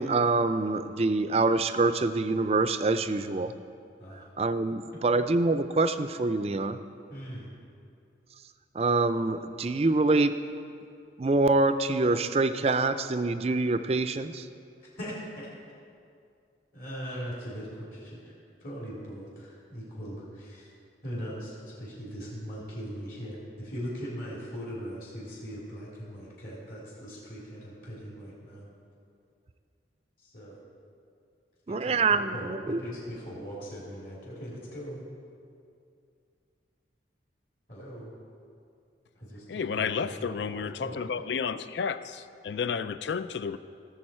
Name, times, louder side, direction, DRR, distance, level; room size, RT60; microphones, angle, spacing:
voice 1, 0.0-3.5 4.4-6.8 8.7-10.3 11.2-14.5 31.7-32.8, right 3 dB, 35° right, 11 dB, 0.4 m, -25 dB
voice 2, 7.1-7.6 14.8-15.5 16.7-18.3 18.6-20.7 21.0-28.6 30.2-30.6 31.7-35.0 37.7-38.1 39.1-41.2, equal, 50° left, -6 dB, 3.0 m, -40 dB
voice 3, 39.5-43.6, left 6 dB, 75° left, 13 dB, 0.4 m, -31 dB
17.0 x 7.1 x 4.4 m, 2.4 s
head